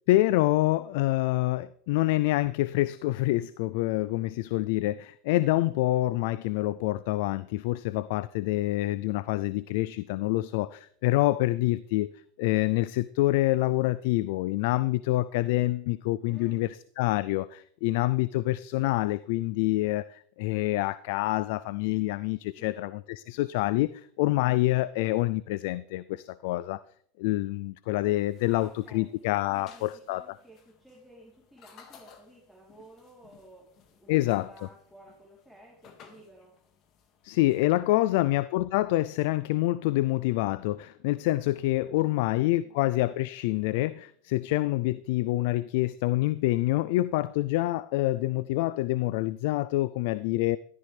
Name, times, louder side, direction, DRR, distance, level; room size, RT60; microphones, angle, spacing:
voice 1, 0.1-12.1 12.4-26.8 27.2-30.4 34.1-34.5 37.2-50.6, left 17 dB, 70° left, 0.4 m, -27 dB
voice 2, 16.3-16.7 22.6-22.8 28.4-29.1 29.5-36.6 37.9-38.4 42.0-42.9, right 1 dB, ahead, 3.5 m, -54 dB
sound 1, 27.9-37.6, left 7 dB, 45° left, 2.0 m, -58 dB
13.0 x 13.0 x 3.4 m
supercardioid pair, 115°, 0 cm